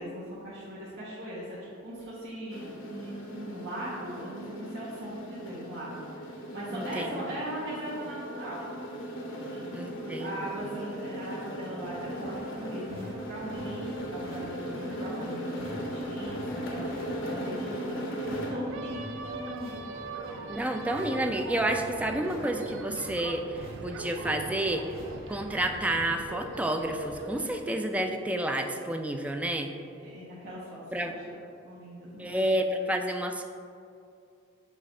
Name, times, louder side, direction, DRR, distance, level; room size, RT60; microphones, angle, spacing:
voice 1, 0.0-6.0 6.5-8.7 9.5-19.8 30.0-31.2 31.6-32.5, right 1 dB, 60° right, -8 dB, 1.0 m, -39 dB
sound 1, 2.5-18.7, equal, 75° left, 0.8 m, -38 dB
voice 2, 6.7-7.2 9.7-10.4 20.5-24.9 25.3-29.7 30.9-31.1 32.2-33.4, right 1 dB, 5° right, 5 dB, 0.3 m, -30 dB
sound 2, 11.8-26.1, equal, 30° right, 1.1 m, -46 dB
sound 3, 18.7-27.5, right 3 dB, 75° right, 0.4 m, -41 dB
7.3 x 2.5 x 5.3 m, 2.5 s
head